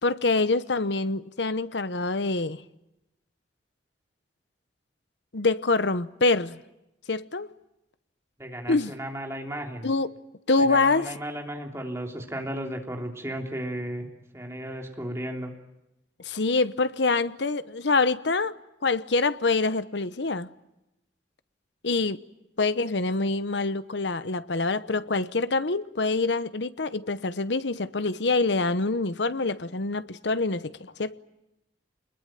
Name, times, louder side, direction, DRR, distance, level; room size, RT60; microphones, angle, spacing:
voice 1, 0.0-2.6 5.3-6.6 7.1-7.5 8.7-8.9 9.8-10.1 10.5-11.2 16.2-18.6 18.8-20.5 21.8-22.2 22.6-31.2, left 3 dB, 75° left, 1.0 m, -25 dB
voice 2, 8.4-9.9 10.6-14.1 14.3-15.5, right 1 dB, 15° right, 3.2 m, -34 dB
26.5 x 21.5 x 9.0 m
head